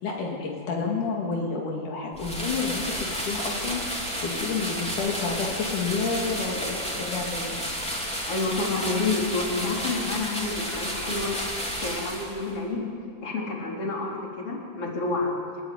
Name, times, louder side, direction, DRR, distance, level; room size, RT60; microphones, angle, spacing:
voice 1, 0.0-7.7, left 4 dB, 80° left, -1 dB, 3.9 m, -30 dB
sound 1, 2.1-12.6, equal, ahead, 3.2 m, -32 dB
voice 2, 8.3-12.9 13.2-15.3, left 3 dB, 45° left, -2 dB, 4.7 m, -29 dB
29.5 x 13.0 x 9.5 m, 2.2 s
omnidirectional pair, 3.6 m